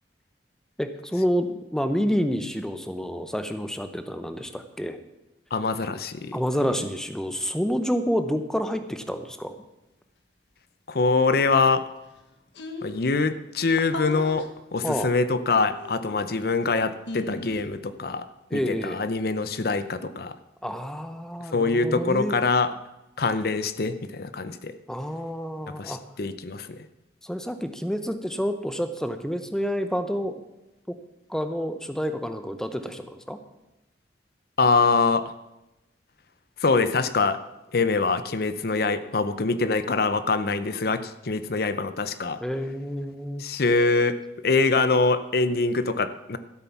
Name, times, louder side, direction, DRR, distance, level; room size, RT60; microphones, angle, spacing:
voice 1, 0.8-5.0 6.3-9.5 14.8-15.1 18.5-19.0 20.6-22.4 24.9-26.0 27.2-30.4 30.9-31.0 31.3-33.4 42.4-43.4, equal, 5° left, 8 dB, 0.7 m, -28 dB
voice 2, 5.5-6.4 10.9-11.8 12.8-18.3 18.5-20.3 21.5-22.7 23.2-24.7 25.8-26.9 34.6-35.3 36.6-37.4 37.7-42.4 43.4-44.2 44.4-46.4, left 3 dB, 55° left, 12 dB, 0.6 m, -24 dB
sound 1, 11.9-12.0 12.2-12.3 12.5-13.1 13.9-14.5 15.6-16.4 17.1-17.6, left 2 dB, 80° left, 1.4 m, -37 dB
13.5 x 8.3 x 5.9 m, 0.99 s
head